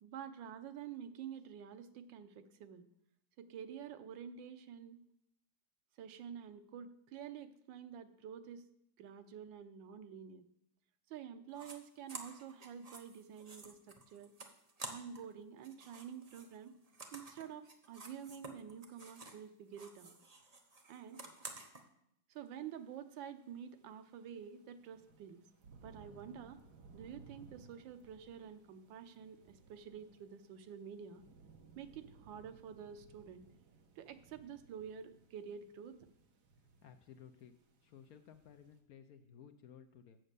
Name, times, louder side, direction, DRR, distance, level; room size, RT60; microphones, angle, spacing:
voice 1, 0.0-2.9 3.4-5.0 6.0-8.6 9.0-10.5 11.1-14.3 14.9-16.7 17.1-20.2 20.9-21.2 22.3-25.4 25.8-26.6 26.9-31.2 31.7-33.4 34.0-36.1, right 8 dB, 90° right, 10 dB, 1.5 m, -49 dB
sound 1, 11.5-11.8 12.1-15.3 15.6-19.4 19.7-21.8, right 3 dB, 35° right, 0.7 m, -51 dB
sound 2, 22.5-22.6 23.6-38.8, right 4 dB, 65° right, 1.6 m, -62 dB
voice 2, 36.6-37.5 37.8-40.2, left 8 dB, 70° left, 8 dB, 0.9 m, -57 dB
7.6 x 7.3 x 6.7 m, 0.76 s
omnidirectional pair, 2.0 m